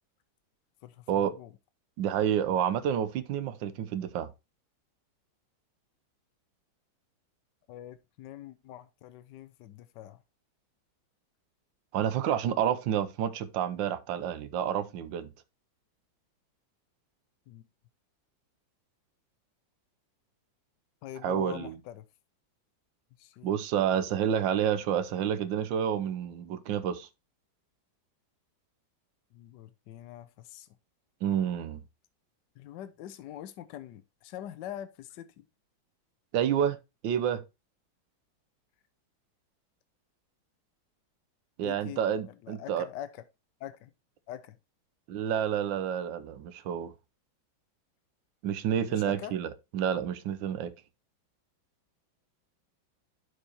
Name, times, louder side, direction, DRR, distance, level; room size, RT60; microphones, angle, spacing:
voice 1, 0.8-1.5 7.7-10.2 17.5-17.6 21.0-22.0 23.2-23.5 29.3-30.7 32.6-35.4 41.6-42.0 42.3-43.2 43.6-43.9 44.3-44.6 48.8-49.3, left 12 dB, 75° left, 1.2 m, -44 dB
voice 2, 2.0-4.3 11.9-15.3 21.2-21.7 23.4-27.1 31.2-31.8 36.3-36.8 37.0-37.4 41.6-42.9 45.1-46.9 48.4-50.7, right 9 dB, 75° right, 1.4 m, -29 dB
10.5 x 4.8 x 2.9 m
omnidirectional pair, 2.1 m